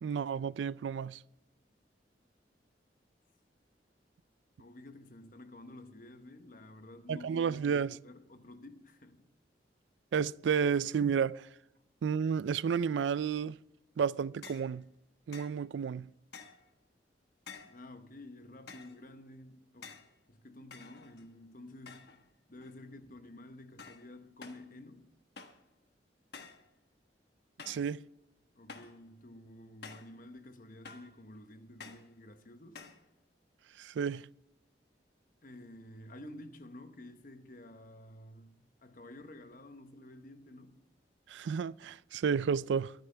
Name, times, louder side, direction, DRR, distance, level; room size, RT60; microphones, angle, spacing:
voice 1, 0.0-1.2 7.1-8.0 10.1-11.5 12.0-13.6 14.0-14.8 15.3-16.1 27.7-28.0 33.8-34.3 41.3-42.9, right 6 dB, 90° right, 0.3 m, -31 dB
voice 2, 4.6-9.3 17.6-22.2 22.5-25.1 28.5-32.9 35.4-40.9, left 1 dB, 50° left, 1.0 m, -51 dB
sound 1, 14.4-14.7 15.3-15.6 16.3-16.7 17.5-17.8 18.7-19.0 19.8-20.1 20.7-21.4 21.9-22.2 22.6-23.0 23.8-24.1 24.4-24.7 25.4-25.7 26.3-26.7 27.6-27.9 28.7-29.0 29.8-30.2 30.8-31.2 31.8-32.1 32.7-33.0, left 5 dB, 65° left, 1.3 m, -50 dB
23.5 x 9.2 x 3.4 m
head